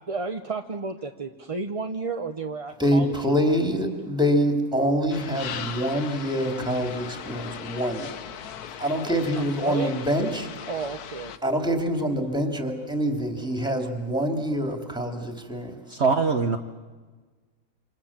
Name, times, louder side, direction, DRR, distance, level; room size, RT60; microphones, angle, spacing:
voice 1, 0.1-3.4 9.4-10.0 10.7-11.6, right 4 dB, 30° right, 5 dB, 0.8 m, -32 dB
voice 2, 2.8-8.1 8.8-10.5 11.4-15.8, equal, 5° right, 4 dB, 2.9 m, -25 dB
sound 1, 5.1-11.4, left 8 dB, 85° left, 1.5 m, -38 dB
voice 3, 15.9-16.6, right 4 dB, 50° right, 5 dB, 1.3 m, -22 dB
28.0 x 26.5 x 7.4 m, 1.4 s
omnidirectional pair, 1.6 m